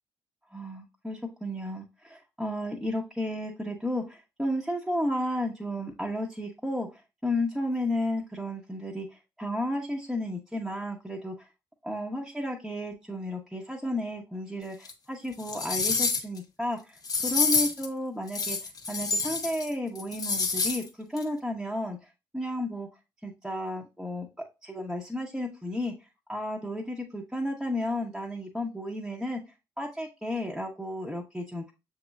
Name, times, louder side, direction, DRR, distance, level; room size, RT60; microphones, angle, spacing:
voice 1, 0.5-6.9 7.2-11.4 11.8-17.0 17.2-18.6 18.9-20.8 21.1-22.0 22.3-22.9 23.2-24.3 24.6-25.9 26.3-29.4 29.8-31.7, left 1 dB, 5° right, -1 dB, 0.9 m, -32 dB
sound 1, 14.8-14.9 15.4-16.4 17.0-17.9 18.3-19.7 19.9-20.8 21.2-21.3, left 4 dB, 35° left, 0.8 m, -28 dB
7.0 x 2.9 x 2.3 m, 0.26 s
figure-of-eight pair, 40°, 11 cm